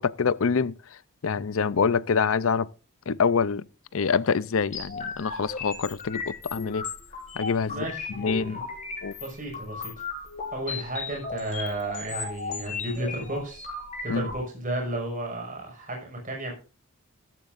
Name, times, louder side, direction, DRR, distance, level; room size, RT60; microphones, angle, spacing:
voice 1, 0.0-2.7 3.1-3.7 3.9-6.9 7.3-8.6 9.0-9.1 14.1-14.3, left 5 dB, 70° left, 0.6 m, -26 dB
sound 1, 4.7-14.3, left 4 dB, 35° left, 6.5 m, -36 dB
voice 2, 7.7-8.6 9.2-10.0 10.5-13.7 14.0-16.5, right 1 dB, 40° right, 6.0 m, -33 dB
16.0 x 14.0 x 2.6 m
head